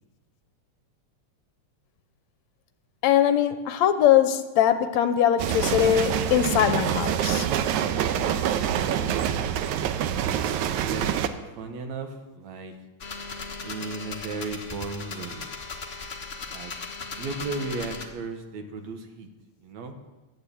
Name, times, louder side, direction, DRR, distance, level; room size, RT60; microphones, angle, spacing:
voice 1, 3.0-7.5, left 10 dB, 75° left, 9 dB, 1.9 m, -21 dB
sound 1, 5.4-11.3, right 9 dB, 85° right, 2.1 m, -26 dB
voice 2, 10.7-12.7 13.6-15.5 16.5-16.7 17.2-19.3 19.6-20.0, right 3 dB, 70° right, 5 dB, 2.5 m, -35 dB
sound 2, 13.0-18.1, left 4 dB, 40° left, 1.0 m, -37 dB
12.0 x 9.6 x 8.5 m, 1.1 s
omnidirectional pair, 3.4 m